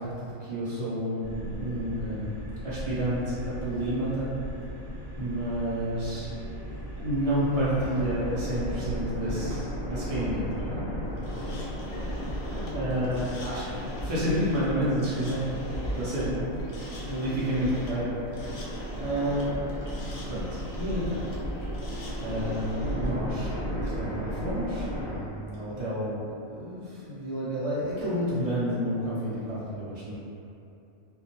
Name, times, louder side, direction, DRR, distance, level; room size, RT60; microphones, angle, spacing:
voice 1, 0.0-2.4 2.6-4.3 5.2-6.3 7.0-10.8 12.7-15.5 15.9-16.6 17.1-18.2 19.0-19.5 20.3-20.5 20.7-21.3 22.2-30.2, equal, 70° right, -10 dB, 0.3 m, -30 dB
sound 1, 1.2-9.0, equal, ahead, 0.5 m, -39 dB
voice 2, 5.8-7.1 11.3-12.5 16.6-16.8 17.2-17.7, left 1 dB, 60° left, -7 dB, 0.7 m, -49 dB
sound 2, 7.6-25.2, equal, 35° right, 0.7 m, -34 dB
sound 3, 11.2-23.1, left 1 dB, 85° left, 1.0 m, -48 dB
2.3 x 2.1 x 2.8 m, 2.8 s
omnidirectional pair, 1.4 m